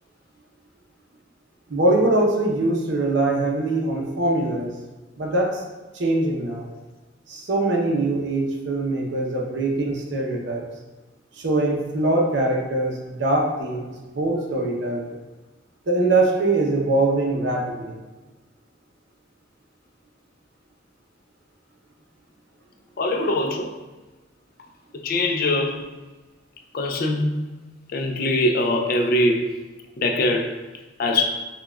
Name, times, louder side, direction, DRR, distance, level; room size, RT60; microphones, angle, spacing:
voice 1, 1.7-4.7 5.2-5.6 5.9-6.7 7.3-10.6 11.4-15.2 15.9-18.0, right 2 dB, 70° right, 0.7 m, -22 dB
voice 2, 23.0-23.8 25.0-25.9 26.7-27.5 27.9-29.6 30.0-30.6 31.0-31.4, left 1 dB, 50° left, 0.4 m, -22 dB
5.7 x 2.3 x 2.2 m
head